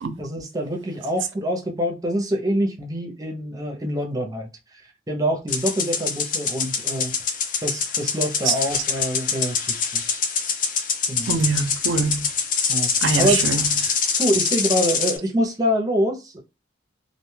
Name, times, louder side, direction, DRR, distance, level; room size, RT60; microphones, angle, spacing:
voice 1, 0.2-4.8 5.1-7.1 7.6-10.0 11.1-11.4 12.7-13.5 14.2-16.4, equal, 20° right, 0.6 m, -25 dB
sound 1, 5.5-15.2, left 6 dB, 45° left, 0.5 m, -24 dB
voice 2, 11.3-12.3 13.0-14.0, right 4 dB, 85° right, 0.5 m, -24 dB
2.4 x 2.2 x 3.1 m
head